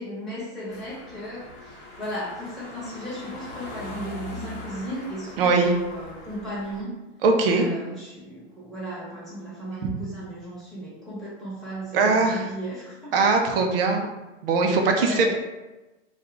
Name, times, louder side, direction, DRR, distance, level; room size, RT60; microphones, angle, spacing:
voice 1, 0.0-7.0 7.5-13.3 14.9-15.3, right 1 dB, ahead, -10 dB, 1.1 m, -35 dB
sound 1, 0.7-6.8, left 2 dB, 30° left, 0.9 m, -41 dB
voice 2, 5.4-5.7 7.2-7.6 11.9-12.4 13.1-14.1 14.4-15.3, right 4 dB, 50° right, 3 dB, 0.6 m, -20 dB
2.8 x 2.4 x 3.6 m, 1.1 s
hypercardioid pair, 135°, 37 cm